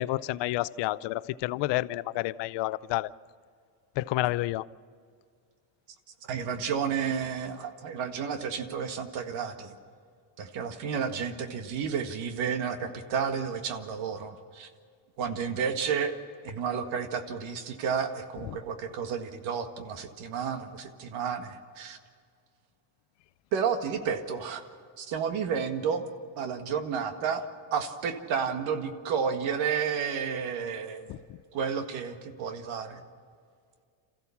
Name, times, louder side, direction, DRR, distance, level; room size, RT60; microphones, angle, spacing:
voice 1, 0.0-3.1 4.0-4.6 31.1-31.2, left 17 dB, 60° left, 0.7 m, -29 dB
voice 2, 6.3-9.8 10.4-14.7 15.2-16.1 16.4-22.0 23.5-24.6 25.0-26.0 26.4-27.4 27.7-31.3 31.5-33.0, right 6 dB, 70° right, 1.9 m, -31 dB
27.5 x 15.0 x 7.2 m
cardioid pair, 130°, 48 cm